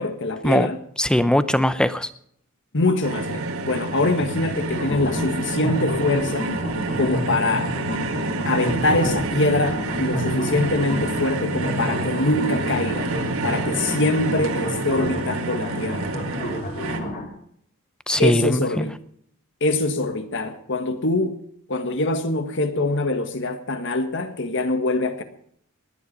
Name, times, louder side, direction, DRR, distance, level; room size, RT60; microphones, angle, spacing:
voice 1, 0.0-0.8 2.7-6.5 7.0-7.7 8.4-13.1 13.4-16.1 18.2-18.9 19.6-21.4 21.7-25.2, left 2 dB, 55° left, 1.6 m, -23 dB
voice 2, 1.0-2.1 18.1-18.9, left 1 dB, 5° left, 0.6 m, -20 dB
sound 1, 3.0-17.0, right 3 dB, 70° right, 1.8 m, -28 dB
sound 2, 4.7-17.3, equal, 40° left, 4.5 m, -30 dB
19.0 x 10.0 x 5.3 m
head